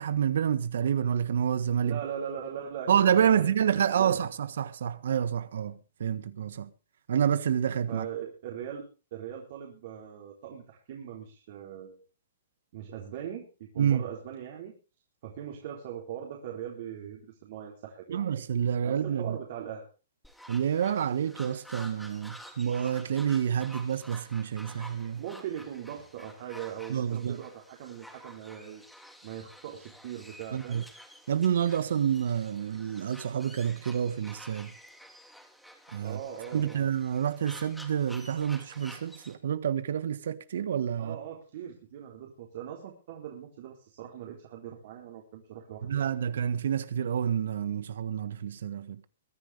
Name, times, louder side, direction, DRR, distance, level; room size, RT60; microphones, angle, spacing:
voice 1, 0.0-2.0 2.9-6.7 7.1-8.1 13.8-14.0 18.1-19.4 20.5-25.2 26.9-27.4 30.5-30.8 31.3-34.7 35.9-36.2 36.5-41.2 45.8-49.0, right 8 dB, 75° right, 1.5 m, -28 dB
voice 2, 1.8-3.5 3.9-4.2 7.9-12.0 12.7-14.7 15.2-18.2 18.8-19.9 25.2-28.8 29.2-30.9 36.0-36.9 41.0-46.1, right 9 dB, 55° right, 3.9 m, -40 dB
sound 1, 20.2-39.3, equal, ahead, 2.9 m, -50 dB
23.0 x 10.5 x 3.5 m
hypercardioid pair, 130°, 0 cm